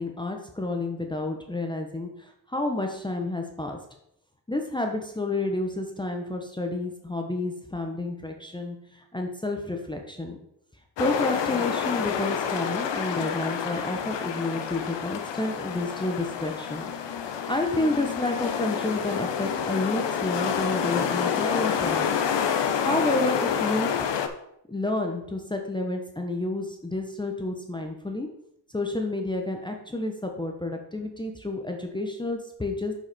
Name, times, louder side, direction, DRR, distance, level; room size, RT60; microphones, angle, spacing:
voice 1, 0.0-3.8 4.5-10.4 11.0-16.9 17.5-22.2 22.8-23.9 24.7-28.3 28.7-32.9, left 2 dB, 10° left, 2 dB, 0.9 m, -30 dB
sound 1, 11.0-24.3, left 7 dB, 80° left, 0.9 m, -28 dB
6.5 x 6.0 x 4.1 m, 0.75 s
cardioid pair, 110°, 42 cm